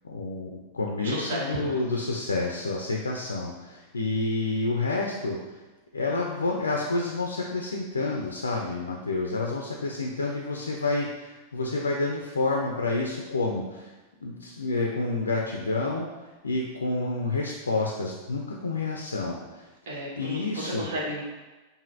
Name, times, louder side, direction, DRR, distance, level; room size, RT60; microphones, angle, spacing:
voice 1, 0.0-5.4 5.9-13.9 14.2-16.1 16.4-19.7 20.2-20.9, left 3 dB, 75° left, 0 dB, 0.3 m, -29 dB
voice 2, 1.0-1.8 19.9-21.2, right 1 dB, 60° right, -2 dB, 0.9 m, -33 dB
4.9 x 2.6 x 2.5 m, 1.2 s
figure-of-eight pair, 90°, 0 cm